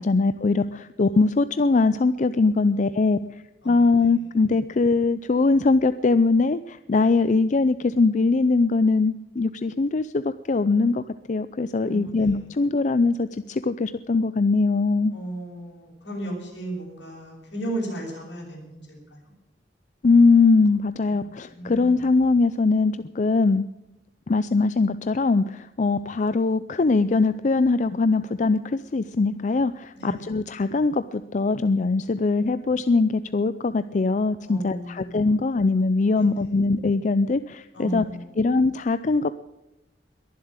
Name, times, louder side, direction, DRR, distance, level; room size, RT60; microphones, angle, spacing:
voice 1, 0.0-15.1 20.0-23.7 24.3-38.1 38.4-39.3, left 3 dB, 45° left, 13 dB, 0.5 m, -21 dB
voice 2, 3.6-4.2 11.8-12.5 15.1-19.2 21.1-22.0 29.9-30.3 34.4-35.2 36.1-36.5 37.7-38.4, right 1 dB, 80° left, -1 dB, 7.1 m, -35 dB
22.0 x 7.5 x 8.8 m, 0.91 s
head